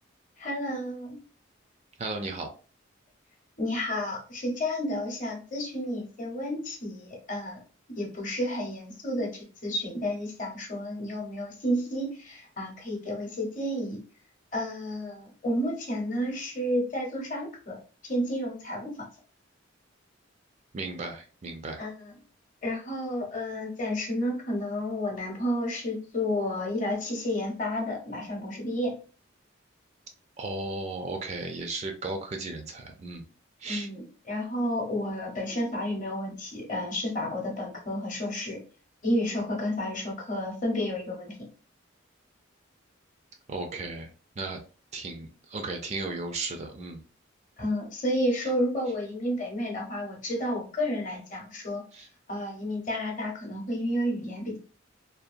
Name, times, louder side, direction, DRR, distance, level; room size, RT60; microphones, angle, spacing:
voice 1, 0.4-1.2 3.6-7.6 7.9-14.0 14.5-17.8 18.0-19.0 21.8-22.1 22.6-29.0 33.7-38.6 39.0-41.5 47.6-51.8 52.3-54.6, left 1 dB, 40° left, 1 dB, 0.8 m, -31 dB
voice 2, 2.0-2.5 20.7-21.8 30.4-33.2 33.6-33.9 43.5-44.1 44.4-44.6 44.9-47.0 51.9-52.1, right 3 dB, 35° right, 4 dB, 0.3 m, -35 dB
2.7 x 2.2 x 2.5 m, 0.37 s
head